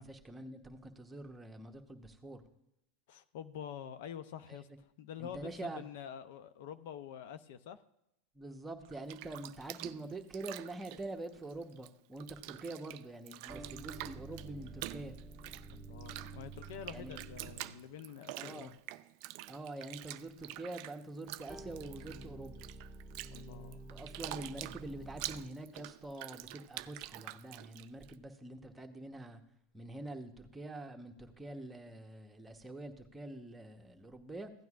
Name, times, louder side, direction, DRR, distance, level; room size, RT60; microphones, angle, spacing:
voice 1, 0.0-2.4 4.5-4.6 5.2-5.8 8.3-15.2 16.9-17.2 18.4-18.7 19.5-22.7 23.9-29.4 29.7-34.5, right 2 dB, 10° right, 3 dB, 1.0 m, -45 dB
voice 2, 3.1-7.8 15.7-18.7 23.3-23.8, left 9 dB, 70° left, 12 dB, 0.5 m, -47 dB
Bathtub (filling or washing), 8.8-11.9 12.2-28.1, right 17 dB, 60° right, 0.3 m, -47 dB
sound 1, 13.5-17.9 21.5-25.7, right 3 dB, 10° left, 1.8 m, -50 dB
15.5 x 9.2 x 2.5 m, 0.81 s
supercardioid pair, 120°, 0 cm